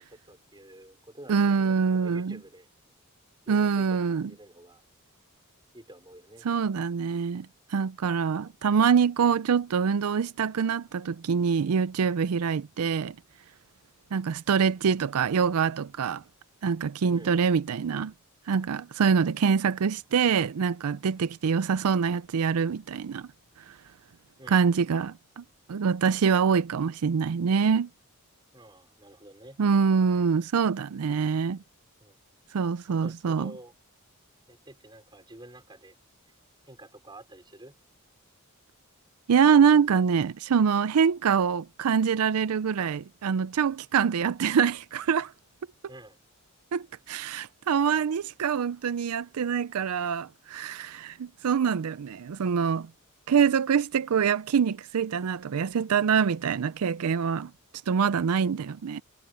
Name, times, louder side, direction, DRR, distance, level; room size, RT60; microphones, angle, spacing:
voice 1, 0.0-2.7 3.4-4.8 5.7-6.5 17.1-17.4 24.4-24.6 28.5-29.6 32.0-32.2 33.0-33.7 34.5-36.0 36.6-37.7 45.9-46.2, right 1 dB, 20° right, 4.3 m, -49 dB
voice 2, 1.3-2.4 3.5-4.3 6.4-13.2 14.1-16.2 16.6-18.1 18.5-23.3 23.7-23.8 24.5-25.4 25.7-27.9 29.6-31.6 32.5-33.5 39.3-45.3 46.7-52.9 53.3-57.5 57.9-59.0, right 6 dB, 85° right, 0.4 m, -25 dB
head